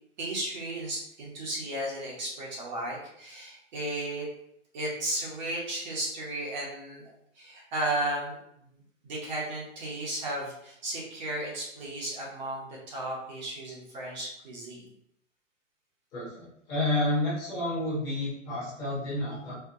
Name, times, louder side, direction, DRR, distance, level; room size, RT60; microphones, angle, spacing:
voice 1, 0.2-4.3 4.7-14.9 19.2-19.4, right 1 dB, 35° right, -4 dB, 0.8 m, -35 dB
voice 2, 16.1-19.5, left 1 dB, 10° left, -11 dB, 0.8 m, -30 dB
4.3 x 2.1 x 2.6 m, 0.74 s
hypercardioid pair, 170°, 38 cm